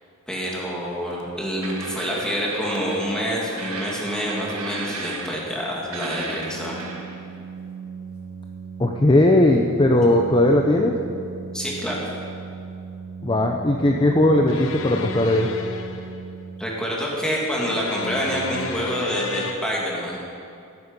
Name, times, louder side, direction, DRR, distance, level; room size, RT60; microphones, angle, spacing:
voice 1, 0.3-6.8 11.5-12.0 16.6-20.2, equal, 5° left, -4 dB, 2.5 m, -27 dB
sound 1, 1.1-1.2 1.6-3.2 3.6-5.6 5.9-7.2 9.5-9.6, right 3 dB, 75° right, 1.6 m, -34 dB
Organ, 6.3-17.1, right 5 dB, 35° right, 3.5 m, -38 dB
voice 2, 8.8-11.0 13.2-15.5, left 1 dB, 20° left, 2 dB, 0.7 m, -18 dB
sound 2, 14.5-16.1 17.5-19.5, left 3 dB, 60° left, 0.9 m, -32 dB
17.0 x 9.5 x 5.4 m, 2.6 s
head